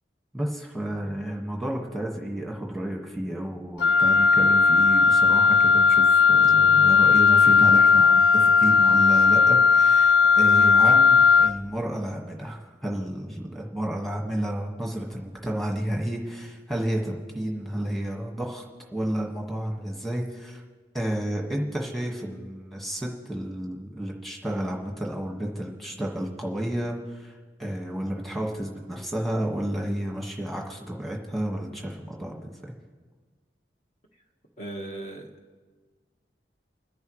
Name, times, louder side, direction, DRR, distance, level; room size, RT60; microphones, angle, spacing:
voice 1, 0.3-18.6 18.9-20.6 20.9-32.7, right 1 dB, ahead, -1 dB, 1.6 m, -31 dB
Wind instrument woodwind instrument, 3.8-11.6, left 5 dB, 80° left, 0.4 m, -17 dB
voice 2, 34.6-35.3, right 2 dB, 40° left, 1 dB, 1.4 m, -36 dB
30.0 x 10.5 x 3.2 m, 1.5 s
head